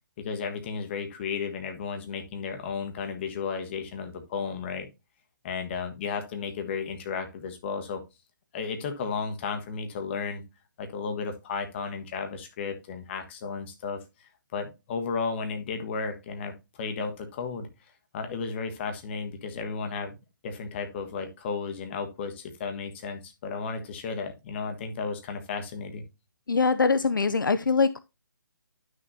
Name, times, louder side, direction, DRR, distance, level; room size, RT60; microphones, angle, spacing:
voice 1, 0.2-4.9 5.4-8.0 8.5-10.4 10.8-14.0 14.5-17.7 18.1-20.2 20.4-26.0, left 5 dB, 35° left, 1.5 m, -33 dB
voice 2, 26.5-28.0, left 4 dB, 75° left, 0.6 m, -23 dB
10.5 x 6.4 x 2.7 m
figure-of-eight pair, 145°, 11 cm